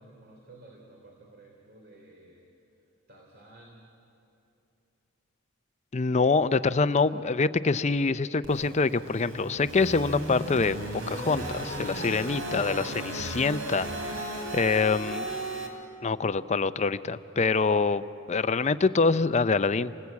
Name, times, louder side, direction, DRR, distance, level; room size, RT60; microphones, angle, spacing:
voice 1, 0.0-2.5 3.1-3.9, right 2 dB, 50° right, 0 dB, 3.2 m, -53 dB
voice 2, 5.9-10.8 11.1-15.3 16.0-18.0 18.3-19.9, left 4 dB, 35° left, 13 dB, 0.5 m, -25 dB
sound 1, 8.4-15.7, right 1 dB, 70° right, 3.6 m, -35 dB
29.0 x 19.5 x 8.4 m, 2.9 s
head